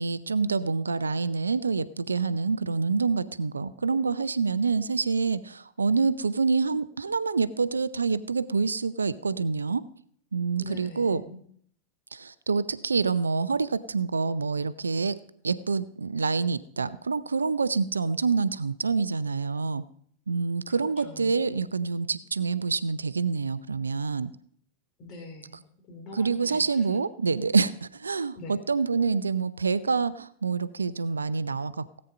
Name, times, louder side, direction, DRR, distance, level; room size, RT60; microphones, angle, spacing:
voice 1, 0.0-9.8 10.3-11.2 12.1-15.1 15.4-19.8 20.3-24.3 26.1-31.8, right 4 dB, 75° right, 16 dB, 0.6 m, -27 dB
voice 2, 10.6-11.4 20.7-21.4 25.0-26.9 28.4-28.6 28.9-29.1, left 2 dB, 40° left, 5 dB, 3.7 m, -44 dB
17.5 x 8.9 x 5.4 m, 0.62 s
figure-of-eight pair, 90°, 0 cm